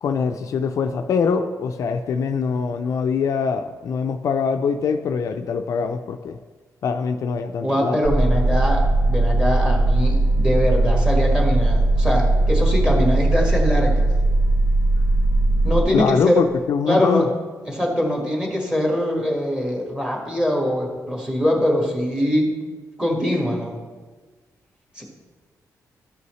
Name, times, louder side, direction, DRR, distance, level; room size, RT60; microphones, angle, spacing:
voice 1, 0.0-6.4 6.8-8.0 15.9-17.3, left 6 dB, 60° left, 7 dB, 0.4 m, -23 dB
voice 2, 7.6-14.1 15.6-16.4 16.9-17.3 17.6-22.6 23.0-23.8 24.9-25.0, equal, 10° right, -2 dB, 1.6 m, -22 dB
sound 1, 8.0-15.8, right 2 dB, 40° right, 2.1 m, -18 dB
13.0 x 5.5 x 3.1 m, 1.4 s
wide cardioid pair, 150°, 6 cm